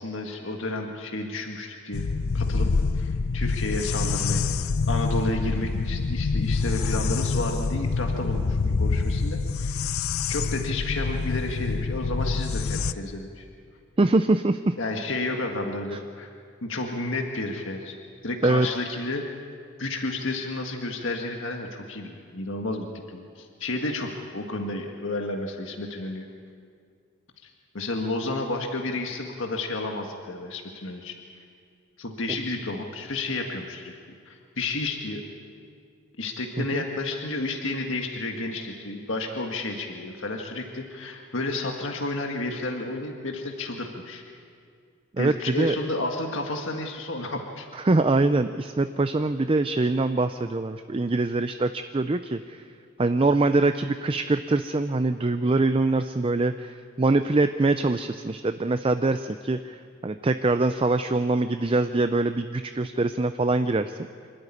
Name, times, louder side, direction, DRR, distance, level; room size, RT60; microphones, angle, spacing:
voice 1, 0.0-2.1 2.3-2.7 2.9-4.5 4.9-9.8 10.3-13.5 14.8-16.3 16.6-17.9 18.2-19.2 19.8-26.3 27.4-31.1 32.0-33.9 34.3-35.2 36.2-44.2 45.2-47.7, left 2 dB, 60° left, 2 dB, 1.7 m, -31 dB
sound 1, 1.9-12.9, left 4 dB, 80° left, 0.6 m, -26 dB
voice 2, 14.0-14.7 18.4-18.7 36.6-36.8 45.2-45.8 47.8-52.6 53.0-64.0, right 2 dB, 25° right, 10 dB, 0.4 m, -24 dB
26.0 x 13.0 x 9.8 m, 2.2 s
head